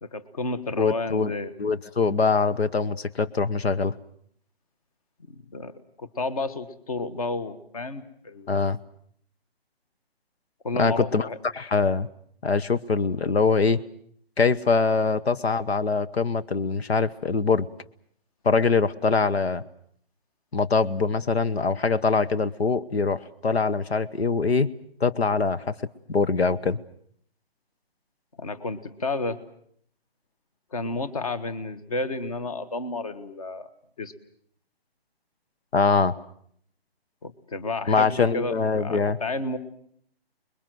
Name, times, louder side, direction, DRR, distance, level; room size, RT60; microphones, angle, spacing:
voice 1, 0.0-1.5 5.3-8.5 10.6-11.4 28.4-29.4 30.7-33.7 34.0-34.1 37.2-39.6, left 2 dB, 35° left, 12 dB, 1.4 m, -31 dB
voice 2, 0.8-1.3 1.6-3.9 8.5-8.8 10.8-11.3 11.5-12.1 12.4-13.8 14.4-17.7 18.4-19.6 20.5-24.7 25.0-25.7 26.1-26.8 35.7-36.1 37.9-39.2, left 4 dB, 85° left, 12 dB, 1.2 m, -23 dB
26.0 x 22.0 x 7.8 m, 0.64 s
hypercardioid pair, 175°, 31 cm